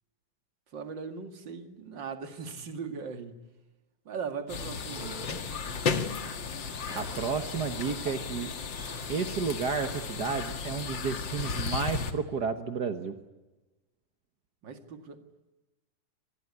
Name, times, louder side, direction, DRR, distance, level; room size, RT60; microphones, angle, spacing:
voice 1, 0.7-3.4 4.1-5.2 14.6-15.2, right 5 dB, 40° right, 2.2 m, -39 dB
sound 1, 4.5-12.1, left 5 dB, 45° left, 1.9 m, -34 dB
Cough, 4.8-10.6, equal, ahead, 6.8 m, -50 dB
voice 2, 6.9-8.5 9.1-13.1, right 5 dB, 80° right, 0.9 m, -32 dB
27.0 x 20.0 x 9.7 m
omnidirectional pair, 3.9 m